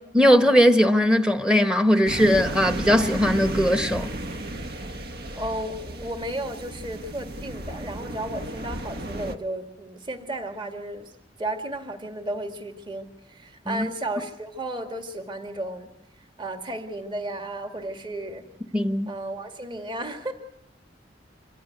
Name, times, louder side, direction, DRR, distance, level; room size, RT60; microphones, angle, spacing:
voice 1, 0.1-4.1 13.7-13.9 18.7-19.1, equal, 5° right, 1.1 m, -19 dB
sound 1, 2.0-9.4, right 1 dB, 60° right, 1.3 m, -34 dB
voice 2, 5.4-11.1 11.4-15.9 16.4-18.5 19.1-20.3, right 1 dB, 25° right, 2.0 m, -33 dB
26.5 x 15.0 x 9.4 m
head